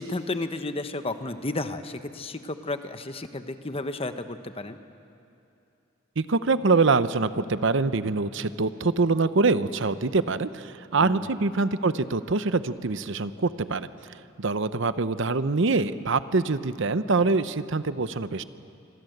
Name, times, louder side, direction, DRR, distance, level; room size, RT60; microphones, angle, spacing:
voice 1, 0.0-4.8 11.0-11.3, left 2 dB, 30° left, 9 dB, 1.0 m, -32 dB
voice 2, 6.2-13.9 14.4-18.4, right 3 dB, 65° right, 13 dB, 0.8 m, -24 dB
26.0 x 26.0 x 8.0 m, 2.7 s
head